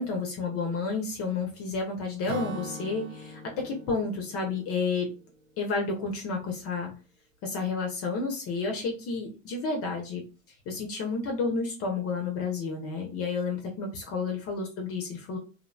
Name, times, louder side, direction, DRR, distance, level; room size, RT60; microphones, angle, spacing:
voice 1, 0.0-5.1 5.6-6.9 7.4-10.2 10.7-15.4, left 4 dB, 35° left, 2 dB, 0.5 m, -31 dB
Acoustic guitar / Strum, 2.3-5.9, equal, 60° right, 0.6 m, -42 dB
2.7 x 2.0 x 2.5 m, 0.36 s
hypercardioid pair, 110°, 43 cm